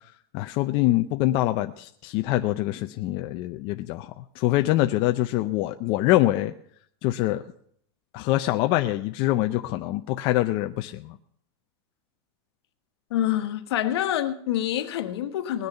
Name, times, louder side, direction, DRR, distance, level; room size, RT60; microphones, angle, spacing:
voice 1, 0.3-6.5 7.0-7.4 8.1-11.2, left 16 dB, 35° left, 0.5 m, -24 dB
voice 2, 13.1-15.7, left 12 dB, 70° left, 1.4 m, -26 dB
20.0 x 6.7 x 5.6 m
supercardioid pair, 160°, 14 cm